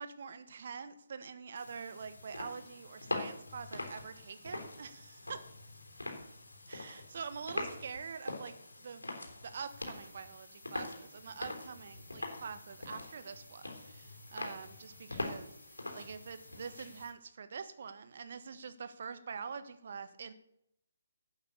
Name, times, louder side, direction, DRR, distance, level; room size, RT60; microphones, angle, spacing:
voice 1, 0.0-5.4 6.7-8.5 8.8-9.0 9.4-15.5 15.9-20.3, right 6 dB, 50° right, 11 dB, 1.4 m, -45 dB
sound 1, 1.5-17.1, left 2 dB, 75° left, 3.7 m, -44 dB
sound 2, 9.7-17.1, right 3 dB, 5° right, 1.8 m, -66 dB
12.0 x 8.7 x 8.4 m, 0.77 s
figure-of-eight pair, 140°, 0 cm